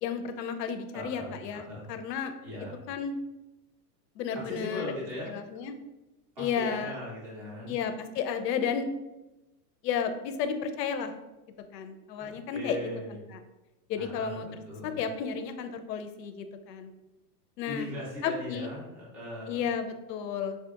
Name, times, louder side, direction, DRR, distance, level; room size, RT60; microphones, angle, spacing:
voice 1, 0.0-2.3 2.9-3.1 4.2-4.9 5.3-5.7 6.4-7.0 7.7-8.9 9.8-11.1 11.7-12.8 13.1-13.2 13.9-16.9 17.6-17.9 18.2-18.7 19.5-20.6, left 7 dB, 85° left, 8 dB, 0.6 m, -32 dB
voice 2, 0.9-1.9 2.4-2.8 4.4-5.3 6.4-7.8 12.2-13.2 14.0-15.0 17.7-19.6, left 1 dB, 15° right, -9 dB, 0.4 m, -39 dB
4.7 x 2.8 x 2.3 m, 1.0 s
supercardioid pair, 175°, 48 cm